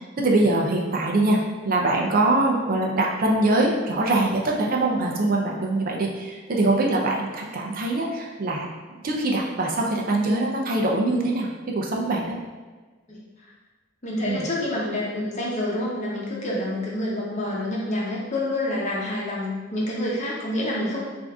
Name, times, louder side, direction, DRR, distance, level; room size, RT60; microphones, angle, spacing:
voice 1, 0.2-1.4 1.6-8.7 9.0-12.4 14.2-14.5, right 2 dB, 45° right, -1 dB, 0.5 m, -23 dB
voice 2, 14.0-21.0, left 1 dB, 40° left, -4 dB, 0.9 m, -27 dB
3.5 x 2.6 x 3.5 m, 1.4 s
head